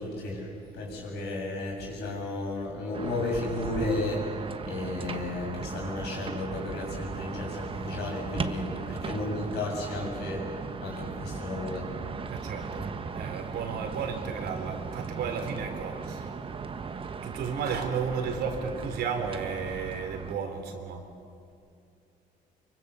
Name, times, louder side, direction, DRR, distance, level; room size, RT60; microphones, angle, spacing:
voice 1, 0.0-4.3 4.6-10.5 10.8-11.9, left 2 dB, 80° left, -1 dB, 7.6 m, -33 dB
sound 1, 2.9-20.3, right 5 dB, 30° right, 1.2 m, -37 dB
voice 2, 12.3-16.3 16.6-16.7 17.2-21.0, right 6 dB, 75° right, 5 dB, 3.5 m, -33 dB
24.5 x 23.5 x 6.8 m, 2.4 s
cardioid pair, 110°, 17 cm